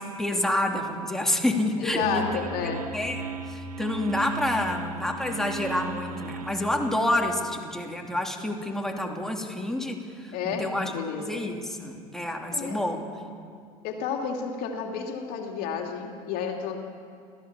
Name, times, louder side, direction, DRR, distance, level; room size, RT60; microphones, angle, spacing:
voice 1, 0.0-2.3 2.6-10.9 11.3-13.0, left 1 dB, ahead, 2 dB, 3.0 m, -28 dB
voice 2, 1.8-2.9 10.3-11.5 12.5-12.8 13.8-16.8, left 6 dB, 55° left, 3 dB, 2.7 m, -31 dB
sound 1, 2.0-7.1, right 4 dB, 80° right, 1.1 m, -37 dB
29.5 x 15.0 x 7.3 m, 2.3 s
hypercardioid pair, 75°, 18 cm